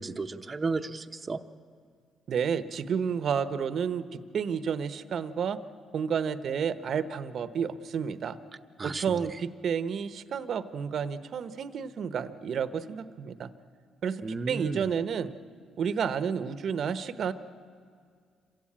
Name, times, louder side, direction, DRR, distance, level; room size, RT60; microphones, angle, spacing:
voice 1, 0.0-1.4 8.8-9.2 14.2-14.8, right 3 dB, 30° right, 5 dB, 0.9 m, -33 dB
voice 2, 2.3-5.6 5.9-8.4 8.8-13.5 14.0-15.3 15.8-17.3, right 7 dB, 60° right, 13 dB, 0.9 m, -31 dB
26.5 x 16.0 x 8.8 m, 2.1 s
cardioid pair, 90°, 0 cm